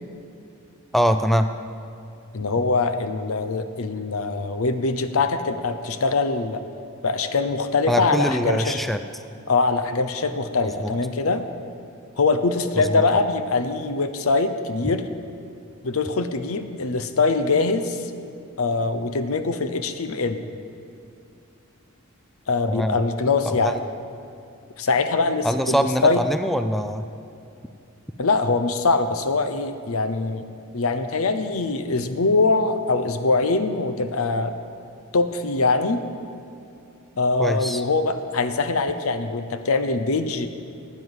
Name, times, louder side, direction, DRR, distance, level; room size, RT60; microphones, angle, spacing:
voice 1, 0.9-1.5 7.9-9.0 10.6-10.9 12.9-13.0 22.7-23.0 23.5-23.8 25.4-27.1 37.4-37.8, equal, ahead, 8 dB, 0.4 m, -23 dB
voice 2, 2.3-6.6 7.0-8.8 9.5-11.4 12.2-15.0 15.8-18.0 18.6-20.4 22.5-23.8 24.8-26.2 28.2-30.5 30.7-34.6 35.1-36.0 37.2-40.5, left 3 dB, 75° left, 9 dB, 0.8 m, -23 dB
10.5 x 9.5 x 8.0 m, 2.6 s
head